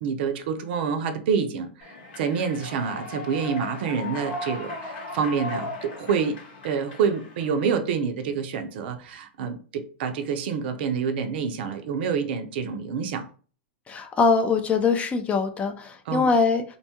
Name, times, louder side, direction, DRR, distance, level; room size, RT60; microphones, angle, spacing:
voice 1, 0.0-6.4 6.6-13.2 16.1-16.3, right 6 dB, 60° right, 0.5 m, -27 dB
Human voice / Clapping / Cheering, 1.8-7.8, left 2 dB, 65° left, 0.9 m, -37 dB
voice 2, 13.9-16.6, left 4 dB, 20° left, 0.4 m, -22 dB
2.6 x 2.2 x 2.8 m
hypercardioid pair, 125°, 6 cm